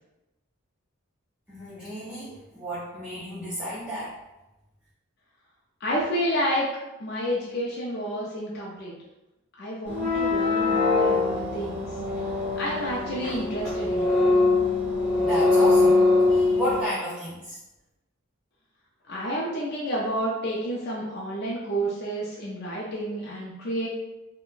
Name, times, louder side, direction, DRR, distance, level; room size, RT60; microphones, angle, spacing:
voice 1, 1.5-4.1 15.2-15.9 16.3-17.6, equal, 5° right, -11 dB, 0.5 m, -32 dB
voice 2, 5.8-6.7 7.0-8.9 9.6-12.0 12.6-14.1 19.1-23.9, equal, 50° left, -5 dB, 0.5 m, -30 dB
sound 1, 9.9-16.8, left 3 dB, 10° left, 1.3 m, -22 dB
3.7 x 2.2 x 2.4 m, 1.0 s
head